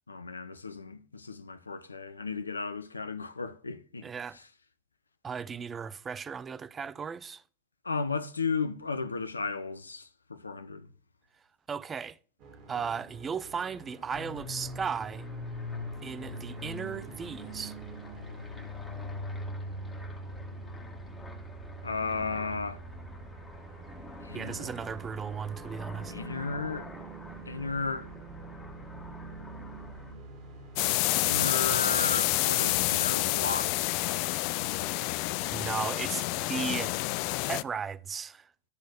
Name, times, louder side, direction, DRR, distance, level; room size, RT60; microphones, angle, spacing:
voice 1, 0.1-4.1 7.8-10.9 21.8-22.8 24.2-24.7 26.1-26.9 27.5-28.1 30.8-34.9, left 4 dB, 80° left, 0.7 m, -35 dB
voice 2, 4.0-4.4 5.2-7.4 11.7-12.2 12.7-15.3 16.0-17.8 24.3-26.1 35.5-36.9 37.5-38.5, right 6 dB, 20° right, 0.5 m, -36 dB
sound 1, 12.4-30.9, right 2 dB, 45° right, 2.8 m, -49 dB
sound 2, 14.1-30.1, equal, 10° left, 2.0 m, -42 dB
sound 3, 30.8-37.6, left 19 dB, 50° left, 0.3 m, -28 dB
12.5 x 4.1 x 6.3 m
figure-of-eight pair, 90°, 0 cm